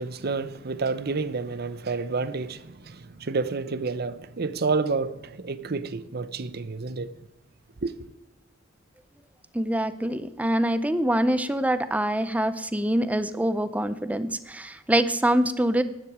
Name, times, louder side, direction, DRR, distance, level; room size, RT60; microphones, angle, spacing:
voice 1, 0.0-7.1 7.8-7.9, right 4 dB, 50° right, 0.7 m, -29 dB
voice 2, 9.5-15.8, right 1 dB, 5° right, 0.5 m, -25 dB
12.0 x 9.9 x 4.9 m
head